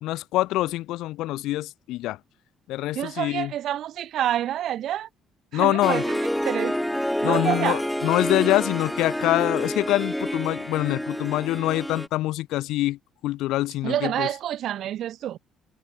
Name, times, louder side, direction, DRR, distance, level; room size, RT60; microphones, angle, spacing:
voice 1, 0.0-2.2 2.7-3.5 5.5-6.0 7.2-14.3, left 16 dB, 80° left, 0.6 m, -25 dB
voice 2, 2.9-5.1 5.5-6.2 6.4-6.8 7.2-7.8 13.8-15.4, right 11 dB, 55° right, 2.2 m, -27 dB
Harp, 5.8-12.1, equal, ahead, 2.7 m, -28 dB
cardioid pair, 170°, 0 cm